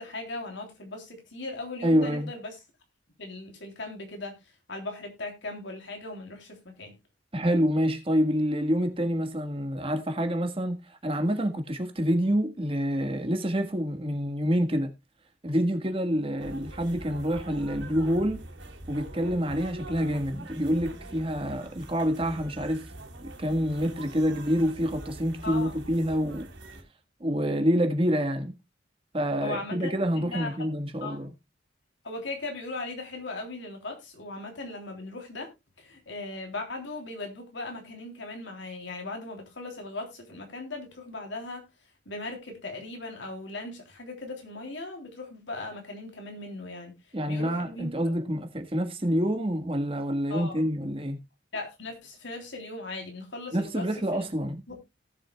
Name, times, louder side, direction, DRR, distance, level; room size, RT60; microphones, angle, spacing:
voice 1, 0.0-2.6 3.2-4.4 4.7-7.0 25.4-25.8 29.4-30.6 31.0-31.3 32.0-35.5 35.8-41.6 42.0-46.9 47.3-48.1 50.3-50.6 51.5-53.9 54.1-54.2 54.7-54.8, left 2 dB, 75° left, 3.4 m, -38 dB
voice 2, 1.8-2.3 7.3-14.9 15.4-18.4 18.9-22.9 23.2-26.5 27.2-28.5 29.1-31.3 47.1-51.2 53.5-54.6, equal, 30° right, 1.6 m, -27 dB
sound 1, 16.4-26.8, right 1 dB, 80° right, 3.3 m, -43 dB
18.0 x 7.6 x 2.3 m
head